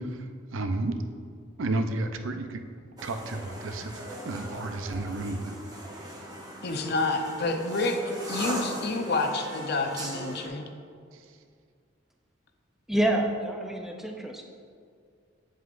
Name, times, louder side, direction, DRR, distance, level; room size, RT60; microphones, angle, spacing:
voice 1, 0.5-0.9 1.6-2.6 3.0-5.6, right 2 dB, 80° right, 7 dB, 0.5 m, -31 dB
sound 1, 3.0-10.5, right 1 dB, 20° right, 0.9 m, -39 dB
voice 2, 6.6-10.6, left 3 dB, 55° left, 5 dB, 0.6 m, -29 dB
voice 3, 12.9-14.5, right 1 dB, ahead, 2 dB, 0.5 m, -27 dB
8.1 x 7.8 x 2.5 m, 2.2 s
head